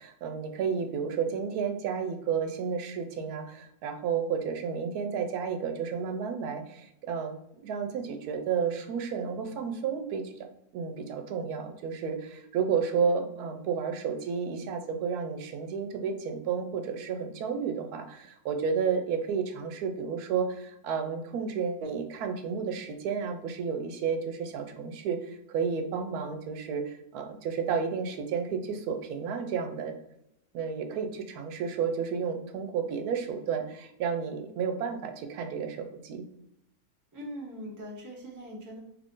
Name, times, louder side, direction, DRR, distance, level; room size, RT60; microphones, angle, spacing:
voice 1, 0.0-10.4 10.7-29.9 30.5-36.2, right 6 dB, 85° right, 6 dB, 1.1 m, -32 dB
voice 2, 37.1-38.8, equal, 20° right, -2 dB, 0.5 m, -41 dB
3.2 x 2.5 x 3.6 m, 0.79 s
omnidirectional pair, 1.6 m